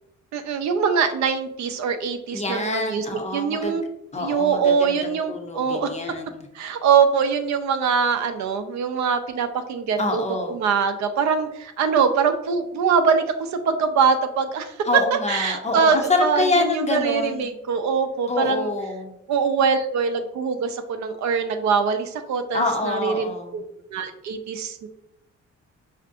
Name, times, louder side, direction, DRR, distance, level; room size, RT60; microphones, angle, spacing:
voice 1, 0.3-3.1 3.3-3.8 4.2-5.9 6.5-10.2 10.5-14.7 15.3-18.7 19.3-23.6 23.9-24.9, right 6 dB, 65° right, 7 dB, 0.5 m, -23 dB
voice 2, 2.3-3.8 4.1-6.4 10.0-10.6 14.9-17.5 18.3-19.1 22.5-23.6, left 3 dB, 25° left, 3 dB, 0.6 m, -26 dB
4.4 x 2.5 x 2.5 m, 0.85 s
cardioid pair, 90°, 30 cm